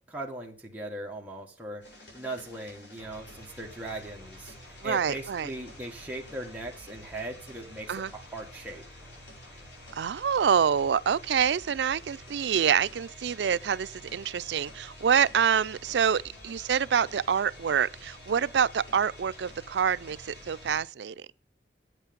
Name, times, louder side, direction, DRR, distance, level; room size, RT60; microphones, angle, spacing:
voice 1, 0.0-1.8 2.1-8.8, right 1 dB, 10° right, 1.5 m, -39 dB
sound 1, 1.8-20.8, left 1 dB, 80° left, 6.2 m, -48 dB
voice 2, 4.8-5.5 7.9-8.1 9.9-21.3, right 7 dB, 75° right, 0.4 m, -26 dB
9.0 x 8.3 x 5.2 m
head